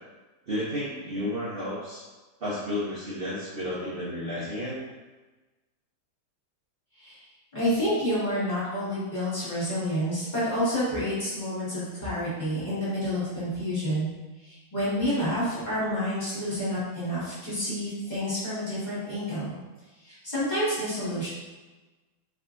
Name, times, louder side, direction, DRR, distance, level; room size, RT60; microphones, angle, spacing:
voice 1, 0.5-2.0 2.4-4.8, left 1 dB, 50° right, -9 dB, 0.7 m, -32 dB
voice 2, 7.5-14.1 14.4-19.5 20.0-21.3, equal, 25° left, -12 dB, 1.4 m, -29 dB
3.7 x 3.3 x 2.5 m, 1.2 s
omnidirectional pair, 2.1 m